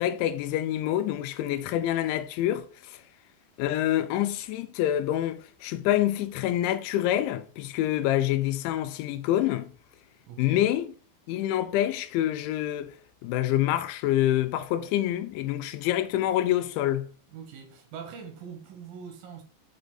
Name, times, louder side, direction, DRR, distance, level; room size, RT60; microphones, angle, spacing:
voice 1, 0.0-3.0 3.6-9.7 10.4-10.9 11.3-12.9 13.2-17.1, left 13 dB, 80° left, 3.1 m, -26 dB
voice 2, 10.3-10.6 17.3-19.4, right 7 dB, 65° right, 2.5 m, -42 dB
7.1 x 5.2 x 4.1 m
omnidirectional pair, 5.4 m